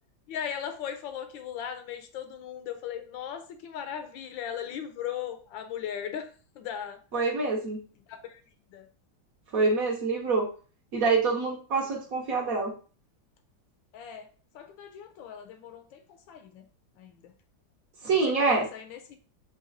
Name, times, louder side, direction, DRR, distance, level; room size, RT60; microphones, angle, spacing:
voice 1, 0.3-6.3 6.5-7.0 8.1-8.4 8.7-8.9 11.8-11.9 13.9-14.3 14.5-16.0 16.3-16.6 17.0-17.3 18.1-19.2, left 9 dB, 80° left, 7 dB, 1.3 m, -38 dB
voice 2, 7.1-7.8 9.5-10.5 10.9-12.7 18.0-18.7, right 4 dB, 55° right, -1 dB, 1.1 m, -26 dB
4.1 x 3.1 x 3.9 m, 0.39 s
omnidirectional pair, 2.1 m